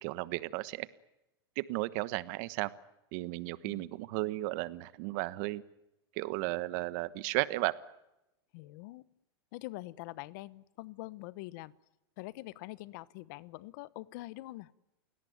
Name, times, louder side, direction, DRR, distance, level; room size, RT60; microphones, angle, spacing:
voice 1, 0.0-0.9 1.6-2.7 3.1-5.6 6.2-7.7, right 19 dB, 50° right, 16 dB, 1.2 m, -34 dB
voice 2, 8.5-9.0 9.5-11.7 12.2-14.7, left 19 dB, 50° left, 19 dB, 1.0 m, -44 dB
29.5 x 18.0 x 9.4 m, 0.90 s
supercardioid pair, 155°, 13 cm